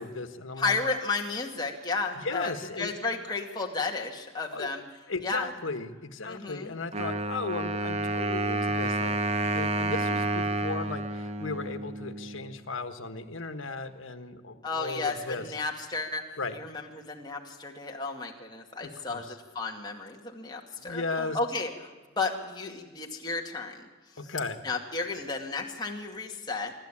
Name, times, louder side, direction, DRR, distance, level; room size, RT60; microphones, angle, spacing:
voice 1, 0.0-0.8 2.1-2.9 4.5-4.7 5.1-15.5 16.4-16.6 18.8-19.4 20.8-21.4 24.2-24.6, left 3 dB, 80° left, 9 dB, 1.4 m, -36 dB
voice 2, 0.6-4.8 5.2-5.5 6.2-6.7 14.6-23.9 24.6-26.7, left 3 dB, 20° left, 0 dB, 2.2 m, -33 dB
Wind instrument woodwind instrument, 6.9-12.6, right 2 dB, 30° right, 0.9 m, -30 dB
26.0 x 12.0 x 8.7 m, 1.3 s
head